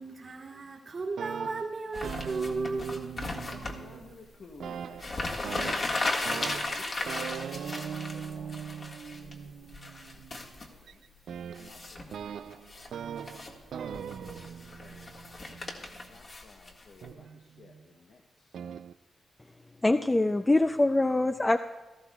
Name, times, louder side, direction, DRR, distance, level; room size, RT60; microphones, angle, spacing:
voice 1, 0.0-3.3, right 3 dB, 50° right, 1.9 m, -35 dB
sound 1, 1.0-4.3 4.6-16.2 17.0-17.8 18.5-18.9, right 8 dB, 80° right, 0.3 m, -41 dB
sound 2, 1.9-3.8 4.7-4.8 5.0-9.3 9.7-10.7 11.5-12.1 12.5-12.9 13.2-13.5 13.9-17.1, left 2 dB, 45° left, 1.7 m, -35 dB
voice 2, 3.5-10.5 10.8-11.0 11.6-12.6 13.4-14.3 14.7-18.6, left 4 dB, 65° left, 0.9 m, -54 dB
voice 3, 19.8-21.6, left 2 dB, 20° left, 0.4 m, -24 dB
16.5 x 13.5 x 2.3 m
cardioid pair, 70°, 0 cm